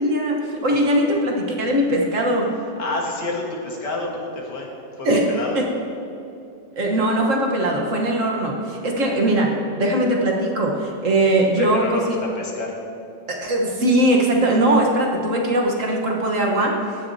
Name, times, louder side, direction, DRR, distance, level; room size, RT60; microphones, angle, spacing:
voice 1, 0.0-2.5 5.0-5.2 5.5-5.7 6.8-9.5 9.8-12.2 13.3-16.7, right 1 dB, 50° right, 0 dB, 1.5 m, -20 dB
voice 2, 2.8-5.6 9.0-9.2 11.6-12.8 14.6-14.7, left 2 dB, 80° left, -1 dB, 2.1 m, -29 dB
15.5 x 10.0 x 2.8 m, 2.7 s
omnidirectional pair, 1.8 m